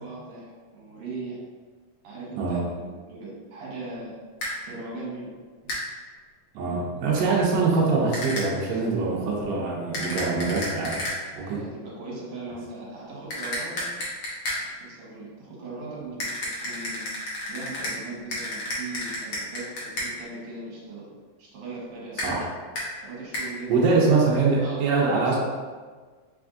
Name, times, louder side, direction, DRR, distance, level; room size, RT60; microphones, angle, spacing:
voice 1, 0.0-1.4 2.0-4.2 4.6-5.3 6.0-6.1 6.5-6.8 11.4-14.1 14.5-17.1 17.5-21.1 21.4-22.5 23.0-23.9 24.5-25.4, right 3 dB, 65° right, -5 dB, 2.1 m, -39 dB
sound 1, 4.4-4.5 5.7-5.8 8.1-8.5 9.9-11.2 13.3-14.6 16.2-18.0 18.3-20.1 22.2-22.3 22.8-22.9 23.3-23.5, left 1 dB, 85° left, 1.1 m, -31 dB
voice 2, 6.5-11.0 11.3-11.6 22.2-22.4 23.7-25.4, right 4 dB, 85° right, -3 dB, 1.5 m, -23 dB
5.0 x 3.4 x 2.4 m, 1.5 s
omnidirectional pair, 3.8 m